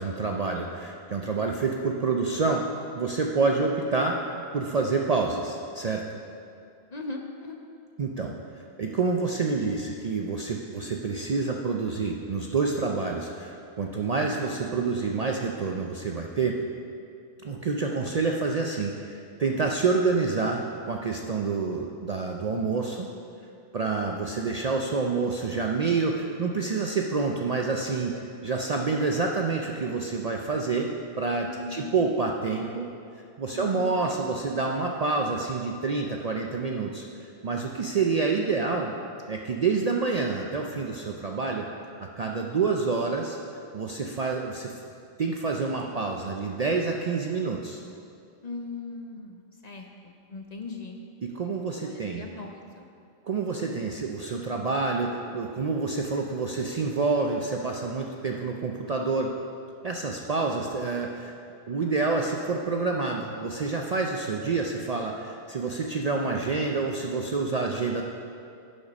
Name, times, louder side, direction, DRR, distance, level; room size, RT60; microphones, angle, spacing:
voice 1, 0.0-2.6 2.9-4.2 4.5-6.0 8.0-8.3 8.8-16.6 17.4-23.1 23.7-28.1 28.4-30.9 31.2-32.9 33.4-38.9 39.3-41.7 42.2-43.4 43.7-44.7 45.2-47.8 51.2-52.2 53.2-59.3 59.8-61.3 61.7-68.0, right 4 dB, 50° right, 1 dB, 0.5 m, -28 dB
voice 2, 6.9-7.6 31.4-32.1 33.5-34.0 48.4-51.0 51.8-52.9, left 3 dB, 45° left, 2 dB, 0.7 m, -39 dB
11.0 x 5.2 x 5.3 m, 2.4 s
omnidirectional pair, 1.2 m